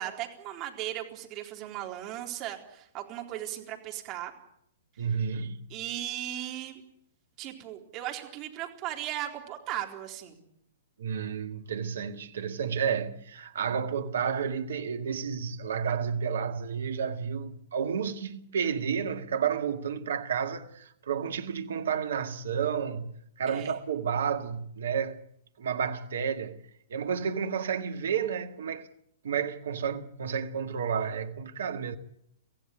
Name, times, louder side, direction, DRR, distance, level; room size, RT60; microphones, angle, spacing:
voice 1, 0.0-4.3 5.7-6.8 7.4-10.4 23.5-23.7, right 13 dB, 30° right, 4.0 m, -37 dB
voice 2, 5.0-5.7 11.0-25.2 25.6-26.6 26.9-28.9 29.2-32.0, right 7 dB, 60° right, 1.8 m, -31 dB
25.0 x 16.0 x 9.3 m
figure-of-eight pair, 110°, 0 cm